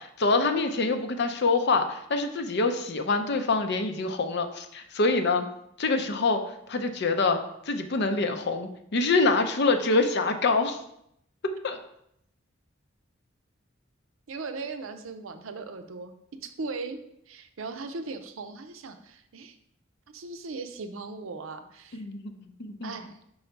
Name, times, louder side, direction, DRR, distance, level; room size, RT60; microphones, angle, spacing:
voice 1, 0.0-5.4 5.8-6.4 6.7-7.4 7.7-10.8 11.6-11.8 21.9-22.3 22.6-22.9, left 3 dB, 60° left, 7 dB, 0.6 m, -25 dB
voice 2, 14.3-16.1 16.4-17.0 17.3-19.6 20.1-22.0 22.8-23.2, right 4 dB, 85° right, 8 dB, 0.6 m, -38 dB
5.5 x 3.9 x 4.5 m, 0.75 s
head